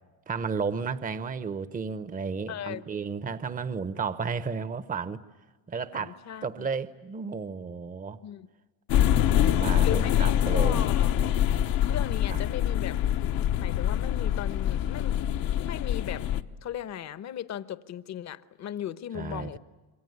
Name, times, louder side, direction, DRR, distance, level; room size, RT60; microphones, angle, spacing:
voice 1, 0.3-5.2 5.7-8.2 9.0-10.8 12.3-12.4 19.1-19.6, right 5 dB, 20° right, 0.9 m, -33 dB
voice 2, 2.5-2.8 3.2-3.3 5.9-6.7 8.2-8.5 9.8-11.1 11.9-13.0 13.6-15.4 15.6-16.3 16.6-19.6, left 10 dB, 45° left, 1.0 m, -37 dB
sound 1, 8.9-16.4, left 11 dB, 65° left, 1.0 m, -25 dB
27.0 x 23.0 x 9.6 m
cardioid pair, 115°, 38 cm